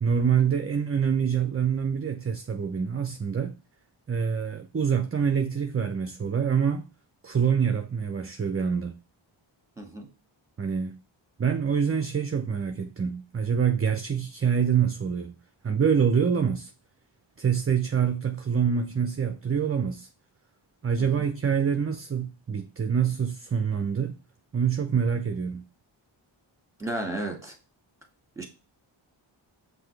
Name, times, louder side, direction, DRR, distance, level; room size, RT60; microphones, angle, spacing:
voice 1, 0.0-3.5 4.1-6.9 7.2-8.9 10.6-11.0 11.4-15.3 15.6-16.7 17.4-20.1 20.8-24.2 24.5-25.6, right 7 dB, 30° right, 0.5 m, -26 dB
voice 2, 9.8-10.1 21.0-21.1 26.8-27.5 28.4-28.5, right 1 dB, 5° right, 1.8 m, -33 dB
5.7 x 2.7 x 3.2 m
cardioid pair, 45°, 50 cm